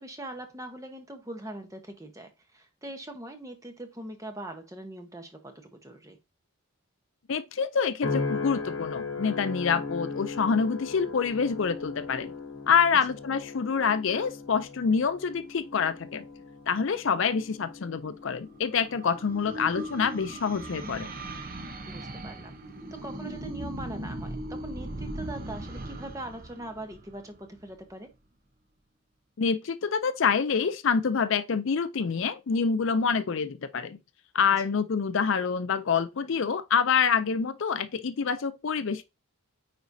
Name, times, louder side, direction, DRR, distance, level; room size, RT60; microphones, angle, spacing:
voice 1, 0.0-6.2 21.9-22.6 22.9-28.1, right 1 dB, 15° right, 1.0 m, -42 dB
voice 2, 7.3-12.3 12.7-16.2 16.7-21.1 29.4-34.0 34.3-39.0, left 6 dB, 55° left, 0.4 m, -26 dB
sound 1, 8.0-22.5 23.0-23.5, left 4 dB, 70° left, 1.0 m, -38 dB
sound 2, 18.1-27.7, right 1 dB, 40° right, 0.8 m, -39 dB
9.3 x 4.1 x 2.7 m
head